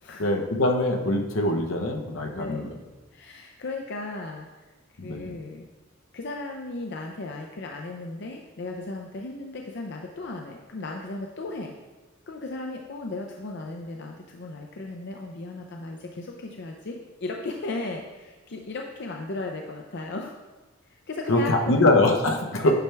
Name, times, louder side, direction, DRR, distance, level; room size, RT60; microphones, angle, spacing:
voice 1, 0.2-2.7 5.0-5.4 21.3-22.7, left 2 dB, 75° left, 3 dB, 0.9 m, -23 dB
voice 2, 2.3-2.7 3.1-4.7 5.0-5.7 6.1-11.7 12.3-20.3 20.9-21.8 22.6-22.7, left 2 dB, 60° left, 2 dB, 0.6 m, -36 dB
9.2 x 5.7 x 3.4 m, 1.2 s
head